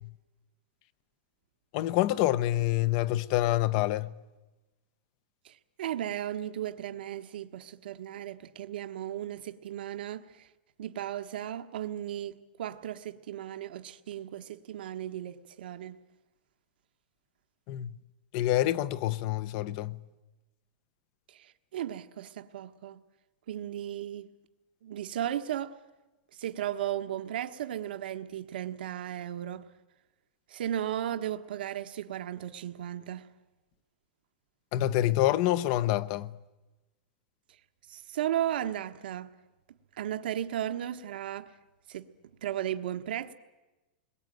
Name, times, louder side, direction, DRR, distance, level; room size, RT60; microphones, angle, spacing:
voice 1, 1.7-4.1 17.7-17.9 18.3-20.0 34.7-36.3, left 14 dB, 45° left, 0.9 m, -27 dB
voice 2, 5.4-10.5 10.8-16.0 21.3-23.0 23.5-24.3 24.8-25.8 26.3-29.6 30.5-33.3 37.9-39.3 39.9-41.6 41.9-42.1 42.4-43.3, right 11 dB, 85° right, 1.4 m, -35 dB
29.5 x 21.5 x 9.3 m
supercardioid pair, 155°, 5 cm